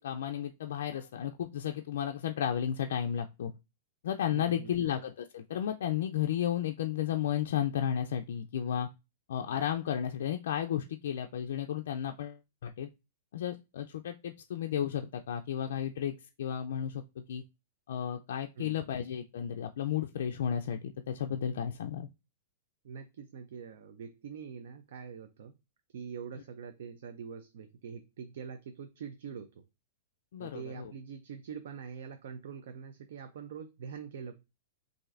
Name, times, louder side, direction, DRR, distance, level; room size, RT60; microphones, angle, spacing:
voice 1, 0.0-3.5 4.0-8.9 9.3-12.9 13.3-17.4 17.9-22.1 30.3-30.9, left 9 dB, 70° left, 4 dB, 0.3 m, -33 dB
voice 2, 4.3-4.9 18.6-18.8 22.8-25.5 25.9-29.6 30.4-34.4, right 6 dB, 60° right, 8 dB, 0.4 m, -44 dB
6.3 x 2.5 x 2.4 m, 0.26 s
supercardioid pair, 170°, 0 cm